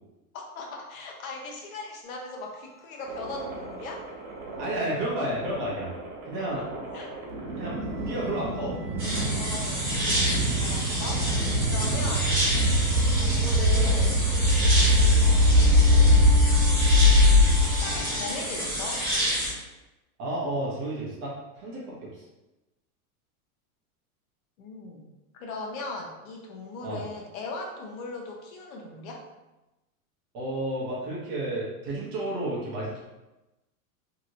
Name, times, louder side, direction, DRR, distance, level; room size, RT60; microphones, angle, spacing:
voice 1, 0.5-4.1 6.9-7.1 9.4-9.8 10.6-11.3 11.6-12.3 12.9-14.2 15.2-16.3 17.6-19.0 24.6-25.1 25.3-29.2, left 3 dB, 65° left, 0 dB, 0.8 m, -38 dB
sound 1, 2.0-5.7 7.6-18.3, right 2 dB, 15° left, 0.6 m, -45 dB
sound 2, 3.1-18.2, left 1 dB, 85° right, 1.1 m, -23 dB
voice 2, 4.6-5.9 6.2-6.7 7.5-7.8 8.1-8.8 11.8-12.2 20.2-22.2 26.8-27.0 30.3-33.0, right 1 dB, 25° right, -5 dB, 0.6 m, -31 dB
sound 3, 9.0-19.5, equal, 5° right, 1.1 m, -29 dB
2.9 x 2.8 x 2.6 m, 1.0 s
supercardioid pair, 160°, 46 cm